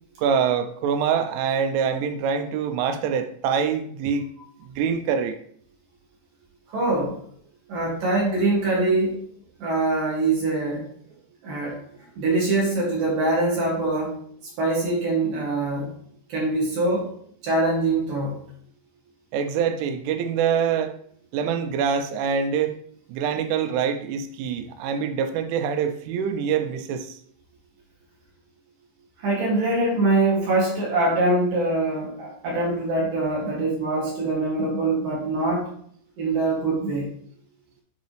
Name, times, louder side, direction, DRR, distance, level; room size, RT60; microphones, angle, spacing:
voice 1, 0.2-4.3 4.6-5.4 19.3-21.0 21.3-22.7 23.1-27.2, right 7 dB, 90° right, 8 dB, 3.2 m, -25 dB
voice 2, 6.7-7.2 7.7-9.2 9.6-10.9 11.4-11.8 12.2-14.1 14.6-15.9 16.3-17.1 17.4-18.4 29.2-35.7 36.2-37.1, right 2 dB, 55° right, -5 dB, 3.2 m, -23 dB
9.6 x 4.1 x 3.1 m, 0.63 s
omnidirectional pair, 5.4 m